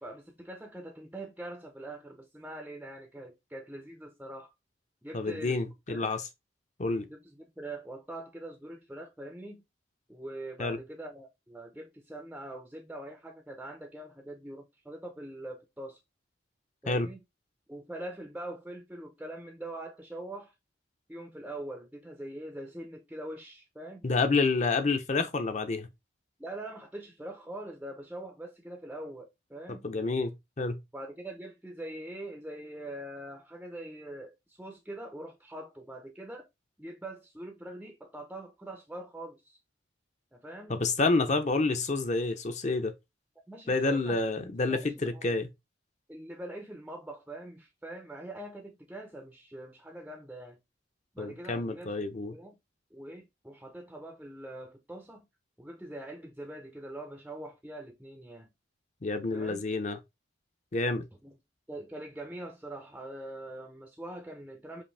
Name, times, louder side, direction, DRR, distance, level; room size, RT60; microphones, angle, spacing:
voice 1, 0.0-4.5 5.0-5.6 5.9-6.2 7.1-9.6 10.1-16.0 16.8-17.2 17.7-20.5 21.1-24.1 26.4-29.9 30.9-36.5 36.8-39.6 40.3-40.8 43.5-44.2 44.7-45.3 46.1-50.6 51.1-52.0 52.3-52.6 52.9-55.3 55.6-58.5 59.3-59.6 61.2-61.4 61.7-64.8, right 1 dB, 5° right, 0.5 m, -43 dB
voice 2, 5.1-6.2 6.8-7.1 10.6-10.8 16.9-17.1 24.0-25.9 29.8-30.8 40.7-42.9 43.7-45.5 51.2-52.3 59.0-60.0 60.7-61.0, left 3 dB, 35° left, 0.6 m, -28 dB
5.2 x 2.6 x 3.3 m
head